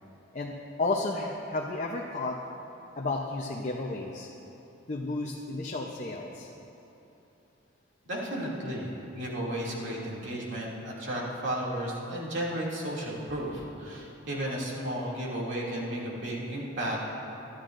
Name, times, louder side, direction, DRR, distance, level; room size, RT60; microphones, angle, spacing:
voice 1, 0.8-2.4 3.0-4.3 4.9-6.5, left 2 dB, 40° left, -1 dB, 0.8 m, -32 dB
voice 2, 8.1-17.0, right 1 dB, 65° right, -5 dB, 2.6 m, -33 dB
22.0 x 13.0 x 2.6 m, 3.0 s
head